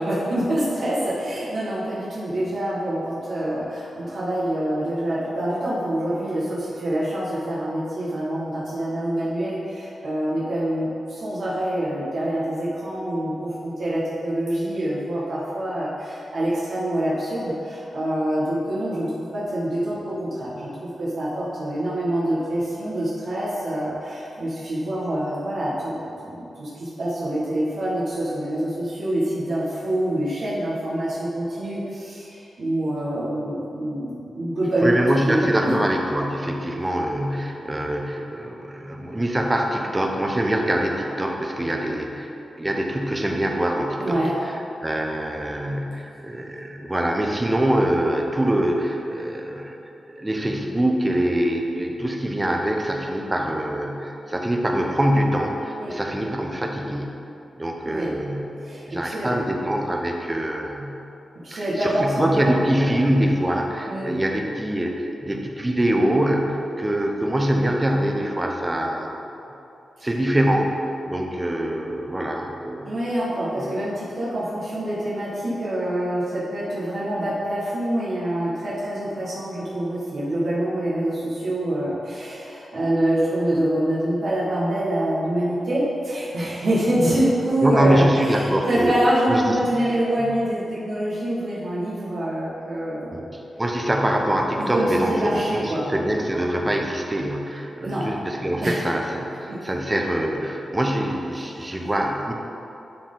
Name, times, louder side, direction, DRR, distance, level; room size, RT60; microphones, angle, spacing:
voice 1, 0.0-35.8 44.0-44.4 55.8-56.0 57.9-58.1 58.6-59.3 61.4-63.0 63.9-64.1 70.0-70.1 72.8-93.3 94.6-95.8 97.8-98.1 98.6-98.8 99.5-99.6 101.6-101.7, right 1 dB, 65° right, -9 dB, 1.8 m, -26 dB
voice 2, 34.8-44.3 44.8-49.7 50.1-57.2 57.6-58.5 58.9-61.0 61.5-69.1 70.0-70.8 71.0-72.9 73.5-73.7 87.6-89.0 89.3-89.8 90.2-90.3 93.1-102.3, right 1 dB, 15° right, 2 dB, 0.7 m, -24 dB
11.5 x 4.5 x 3.9 m, 2.8 s
wide cardioid pair, 145°, 0 cm